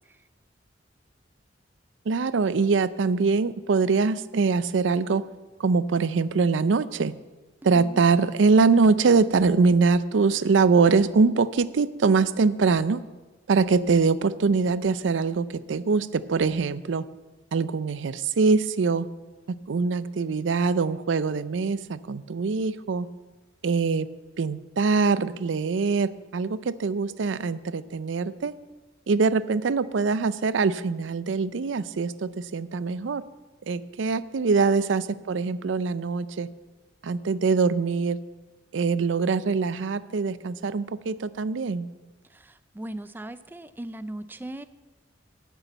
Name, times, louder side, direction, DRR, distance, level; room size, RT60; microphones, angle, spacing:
voice 1, 2.1-5.3 5.6-7.1 7.6-13.0 13.5-17.1 17.5-19.1 19.5-23.1 23.6-24.1 24.4-28.5 29.1-33.2 33.7-36.5 37.0-38.2 38.7-41.9, right 4 dB, 85° right, 16 dB, 0.5 m, -23 dB
voice 2, 42.3-44.6, right 1 dB, 10° right, 12 dB, 0.4 m, -38 dB
10.0 x 7.0 x 7.9 m, 1.2 s
head